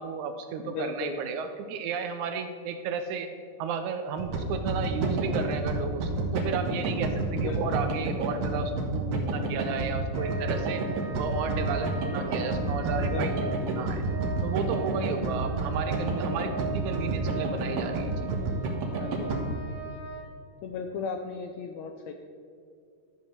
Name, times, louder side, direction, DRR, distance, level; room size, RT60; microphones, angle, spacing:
voice 1, 0.0-3.3 3.6-10.8 11.2-14.0 14.4-18.3, right 6 dB, 80° right, 7 dB, 1.8 m, -33 dB
voice 2, 0.6-1.2 7.3-7.8 13.0-13.5 19.0-19.3 20.6-22.1, left 5 dB, 80° left, 5 dB, 1.6 m, -36 dB
sound 1, 4.2-19.4, right 3 dB, 55° right, 1.9 m, -29 dB
sound 2, 10.1-20.2, right 4 dB, 20° right, 2.3 m, -40 dB
12.5 x 5.2 x 6.5 m, 2.3 s
omnidirectional pair, 3.8 m